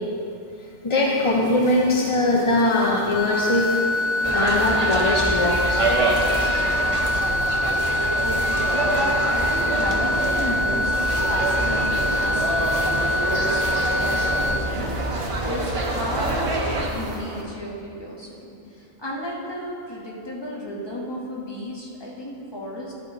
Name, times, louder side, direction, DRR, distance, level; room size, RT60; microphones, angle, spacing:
voice 1, 0.8-3.8 4.3-5.8 6.3-6.5, left 2 dB, 35° left, -2 dB, 0.5 m, -21 dB
sound 1, 1.0-17.4, right 2 dB, 75° right, 1.5 m, -38 dB
sound 2, 3.2-14.6, left 1 dB, 90° left, 1.2 m, -24 dB
sound 3, 4.2-16.9, right 2 dB, 30° right, 0.7 m, -26 dB
voice 2, 8.2-22.9, equal, 20° left, -4 dB, 1.3 m, -33 dB
12.0 x 5.7 x 3.9 m, 2.6 s
omnidirectional pair, 1.4 m